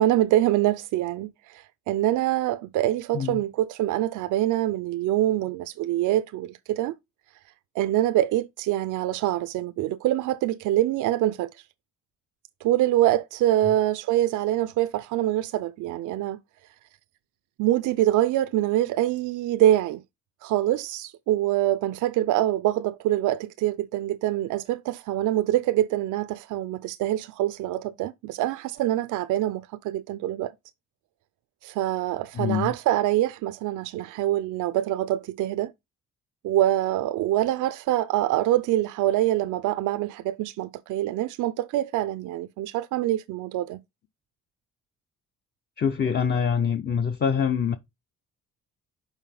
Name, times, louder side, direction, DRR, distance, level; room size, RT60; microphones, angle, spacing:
voice 1, 0.0-6.9 7.8-11.5 12.6-16.4 17.6-20.0 20.4-30.5 31.6-35.7 36.4-43.8, right 14 dB, 85° right, 0.5 m, -25 dB
voice 2, 32.3-32.7 45.8-47.8, left 7 dB, 35° left, 0.6 m, -25 dB
5.6 x 4.1 x 5.7 m
cardioid pair, 90°, 30 cm